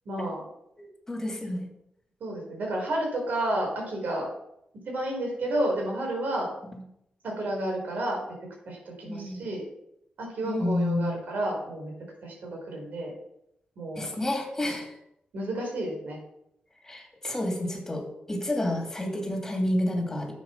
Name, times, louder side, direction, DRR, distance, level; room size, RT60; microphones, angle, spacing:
voice 1, 0.1-0.4 2.2-4.3 4.9-6.5 7.2-8.2 8.7-9.6 10.2-11.9 12.2-13.1 13.8-14.2 15.3-16.2, right 1 dB, 75° right, 0 dB, 4.3 m, -31 dB
voice 2, 0.8-1.6 6.7-6.8 9.1-9.4 10.4-11.1 13.9-14.9 16.8-20.3, left 1 dB, 15° left, 1 dB, 2.7 m, -30 dB
10.0 x 7.7 x 5.7 m, 0.78 s
wide cardioid pair, 160°, 3 cm